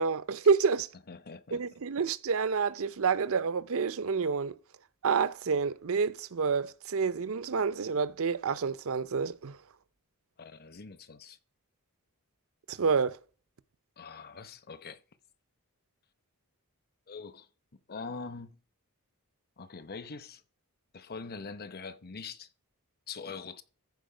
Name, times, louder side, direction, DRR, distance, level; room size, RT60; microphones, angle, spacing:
voice 1, 0.0-0.9 1.5-4.5 5.0-9.6 12.7-13.2, right 5 dB, 65° right, 0.6 m, -28 dB
voice 2, 1.1-1.6 10.4-11.4 14.0-15.0 17.1-17.5 17.9-18.6 19.6-20.4 20.9-22.5 23.1-23.6, left 4 dB, 45° left, 0.9 m, -43 dB
14.0 x 5.0 x 5.0 m
head